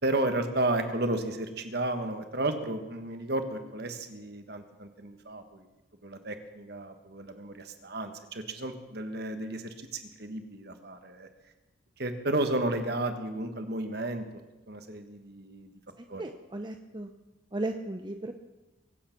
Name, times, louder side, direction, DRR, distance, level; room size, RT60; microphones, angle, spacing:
voice 1, 0.0-5.7 6.0-11.3 12.0-14.2 14.7-15.7 16.1-16.2, right 2 dB, 50° right, 7 dB, 1.5 m, -33 dB
voice 2, 16.0-17.1 17.5-18.3, right 2 dB, 20° right, 5 dB, 0.7 m, -36 dB
23.5 x 8.6 x 6.0 m, 1.1 s
head